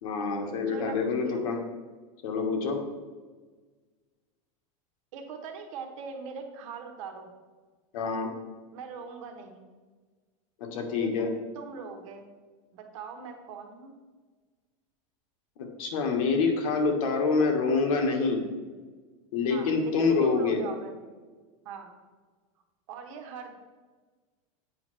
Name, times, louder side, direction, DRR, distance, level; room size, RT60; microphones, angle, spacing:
voice 1, 0.0-1.6 2.2-2.8 7.9-8.3 10.6-11.3 15.8-18.4 19.3-20.6, left 4 dB, 80° left, 3 dB, 1.4 m, -26 dB
voice 2, 0.7-1.5 5.1-7.3 8.7-9.7 10.9-12.3 12.7-13.9 19.5-20.9 21.6-21.9 22.9-23.5, right 5 dB, 70° right, 4 dB, 1.2 m, -41 dB
8.3 x 5.2 x 3.2 m, 1.4 s
supercardioid pair, 160°, 17 cm